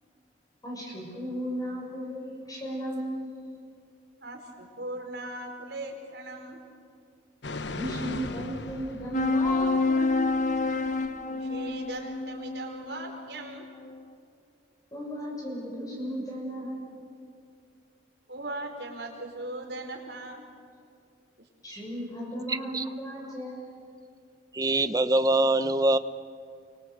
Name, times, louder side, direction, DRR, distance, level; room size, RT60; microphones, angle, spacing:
voice 1, 0.6-3.4 7.7-10.4 14.9-17.1 21.6-23.8, equal, 20° left, -2 dB, 7.0 m, -35 dB
voice 2, 4.2-6.6 11.2-13.7 18.3-20.4, right 2 dB, 65° right, 3 dB, 4.9 m, -39 dB
sound 1, 7.4-10.3 10.6-10.7, left 2 dB, 75° left, 1.2 m, -38 dB
sound 2, 9.1-14.0, left 3 dB, 45° left, 1.2 m, -28 dB
voice 3, 22.5-22.9 24.5-26.0, right 2 dB, 20° right, 11 dB, 0.9 m, -24 dB
29.5 x 24.5 x 8.1 m, 2.4 s
head